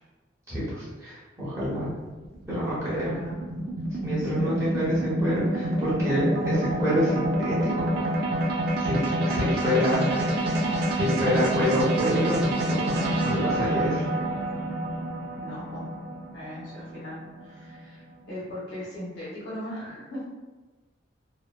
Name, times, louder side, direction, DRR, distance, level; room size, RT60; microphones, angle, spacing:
voice 1, 0.5-1.9 2.5-3.1 4.0-8.0 8.5-10.1 11.0-14.0, equal, 15° right, -10 dB, 0.9 m, -27 dB
sound 1, 1.6-18.0, right 1 dB, 55° right, 0.4 m, -28 dB
voice 2, 2.8-3.4 4.2-4.7 9.2-11.5 13.5-13.9 15.3-15.8 16.3-20.2, left 1 dB, 65° left, -8 dB, 1.3 m, -39 dB
2.9 x 2.1 x 2.2 m, 1.2 s
head